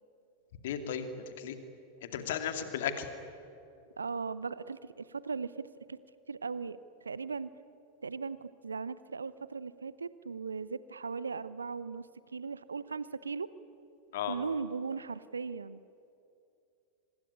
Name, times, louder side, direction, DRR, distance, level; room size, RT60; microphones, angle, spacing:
voice 1, 0.6-1.6 2.0-3.1 14.1-14.4, left 9 dB, 55° left, 8 dB, 2.4 m, -35 dB
voice 2, 4.0-6.0 6.3-7.5 8.0-13.5 14.2-15.8, right 5 dB, 75° right, 17 dB, 0.7 m, -38 dB
25.0 x 20.5 x 9.8 m, 2.7 s
figure-of-eight pair, 90°, 0 cm